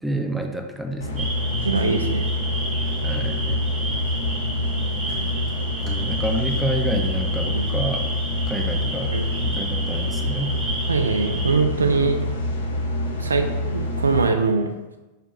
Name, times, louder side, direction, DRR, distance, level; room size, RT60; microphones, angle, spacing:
voice 1, 0.0-1.3 3.0-3.6 5.8-8.1 8.5-9.2 9.4-10.6, right 1 dB, 5° right, 2 dB, 0.5 m, -29 dB
sound 1, 1.0-14.2, left 1 dB, 70° left, 0.5 m, -26 dB
sound 2, 1.1-11.5, right 2 dB, 30° right, 1.0 m, -32 dB
voice 2, 1.7-2.3 7.5-7.6 9.1-9.2 10.9-12.2 13.2-14.7, right 4 dB, 75° right, 5 dB, 0.4 m, -22 dB
5.6 x 2.2 x 2.8 m, 1.1 s
figure-of-eight pair, 90°, 0 cm